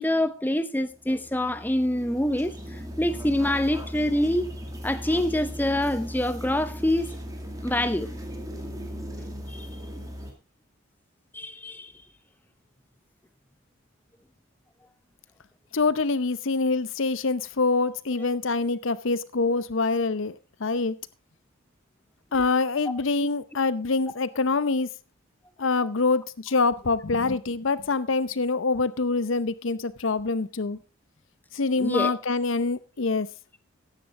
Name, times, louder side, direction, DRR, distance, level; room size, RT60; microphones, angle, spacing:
voice 1, 0.0-4.5 4.8-7.2 7.6-8.1 9.5-9.7 11.3-11.9 18.2-18.3 31.8-32.1, left 1 dB, 10° left, 0.7 m, -26 dB
sound 1, 0.9-10.3, equal, 15° right, 2.2 m, -38 dB
voice 2, 15.7-21.0 22.3-24.9 25.6-30.8 31.5-33.3, left 3 dB, 65° left, 0.7 m, -25 dB
14.0 x 10.0 x 3.7 m
head